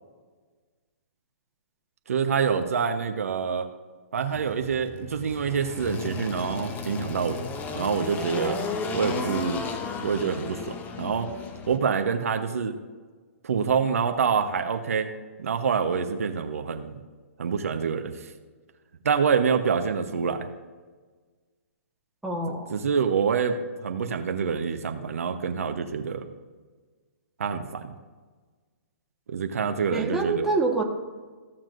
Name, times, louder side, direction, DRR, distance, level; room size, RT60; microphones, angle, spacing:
voice 1, 2.1-3.7 4.1-7.4 7.7-8.6 8.9-9.6 10.0-11.3 11.7-12.8 13.4-15.1 15.4-17.0 17.4-18.3 19.0-20.5 22.7-23.5 23.8-26.3 27.4-27.9 29.3-30.5, right 6 dB, 70° right, 6 dB, 1.0 m, -26 dB
Engine, 4.3-11.8, left 5 dB, 20° left, 0.8 m, -34 dB
voice 2, 22.2-22.8 29.9-30.8, right 3 dB, 5° right, -2 dB, 1.3 m, -26 dB
15.5 x 7.3 x 2.6 m, 1.4 s
hypercardioid pair, 130°, 8 cm